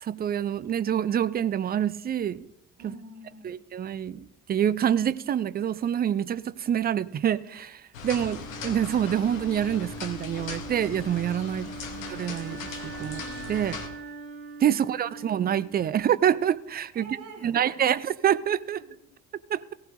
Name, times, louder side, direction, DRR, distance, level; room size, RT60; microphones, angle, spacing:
voice 1, 0.0-2.5 3.4-11.7 12.1-13.2 13.5-13.8 14.6-17.1 17.4-18.8 19.5-19.6, right 9 dB, 25° right, 0.5 m, -26 dB
voice 2, 2.8-3.5 16.9-17.8, right 2 dB, 55° right, 3.4 m, -47 dB
sound 1, 7.9-13.9, left 5 dB, 80° left, 1.1 m, -39 dB
Wind instrument woodwind instrument, 8.1-16.2, right 4 dB, 80° right, 1.8 m, -42 dB
17.0 x 14.5 x 2.6 m
figure-of-eight pair, 45°, 40 cm